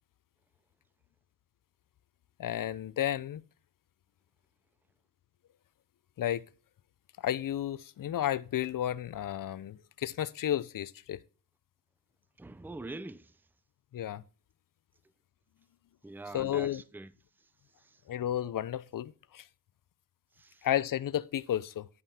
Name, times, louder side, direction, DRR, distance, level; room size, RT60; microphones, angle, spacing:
voice 1, 2.4-3.4 6.2-6.4 7.2-11.2 13.9-14.2 16.3-16.8 18.1-19.4 20.6-21.9, left 11 dB, 55° left, 0.7 m, -32 dB
voice 2, 12.4-13.3 16.0-17.1 20.4-20.6, right 2 dB, 5° right, 0.6 m, -44 dB
11.0 x 5.4 x 4.3 m
supercardioid pair, 60°, 38 cm